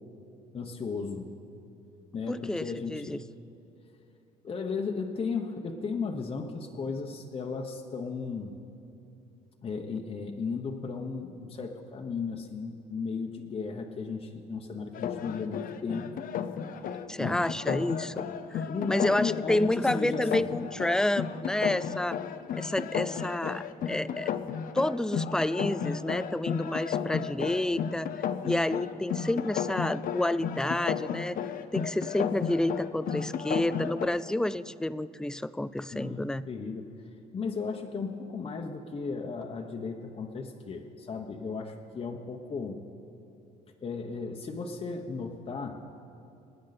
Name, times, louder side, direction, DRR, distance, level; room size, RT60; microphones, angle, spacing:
voice 1, 0.5-1.3 2.1-3.1 4.4-8.5 9.6-16.1 17.2-17.4 18.7-20.5 35.9-42.8 43.8-45.8, left 4 dB, 35° left, 1 dB, 1.1 m, -35 dB
voice 2, 2.3-3.2 17.1-18.2 18.5-22.2 22.5-24.3 24.7-28.1 28.4-31.4 31.7-36.4, left 1 dB, 5° left, 15 dB, 0.3 m, -29 dB
sound 1, 14.9-34.1, left 7 dB, 55° left, 0.8 m, -33 dB
27.0 x 9.4 x 4.2 m, 2.7 s
cardioid pair, 110°, 17 cm